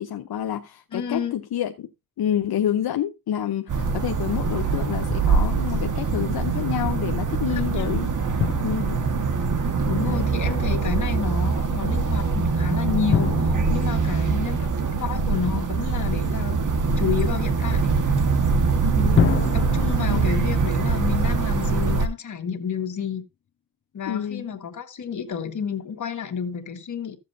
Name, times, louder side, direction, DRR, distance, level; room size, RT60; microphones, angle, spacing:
voice 1, 0.0-1.9 2.2-8.1 8.6-9.0 10.0-10.3 19.0-19.3 20.1-20.3 24.1-24.5, left 10 dB, 75° left, 0.9 m, -28 dB
voice 2, 0.9-1.4 7.5-7.9 9.8-16.6 17.0-17.9 19.5-23.2 23.9-27.2, left 7 dB, 50° left, 1.6 m, -30 dB
sound 1, 3.7-22.1, right 4 dB, 55° right, 1.5 m, -23 dB
Drum, 5.1-5.9 8.4-10.2 13.1-15.6 19.2-22.3, left 9 dB, 35° left, 0.4 m, -30 dB
14.5 x 7.4 x 2.6 m
wide cardioid pair, 140°, 38 cm